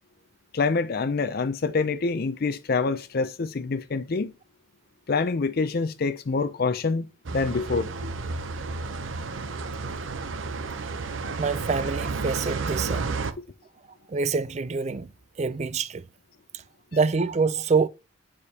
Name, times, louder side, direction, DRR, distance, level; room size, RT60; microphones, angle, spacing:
voice 1, 0.5-4.3 5.1-7.1 7.3-7.9, left 4 dB, 50° left, 0.5 m, -26 dB
sound 1, 7.2-13.3, right 4 dB, 70° right, 0.7 m, -31 dB
voice 2, 11.4-13.2 14.1-15.1 15.4-16.0 16.9-17.9, right 4 dB, 35° right, 0.4 m, -26 dB
8.7 x 4.9 x 2.8 m
head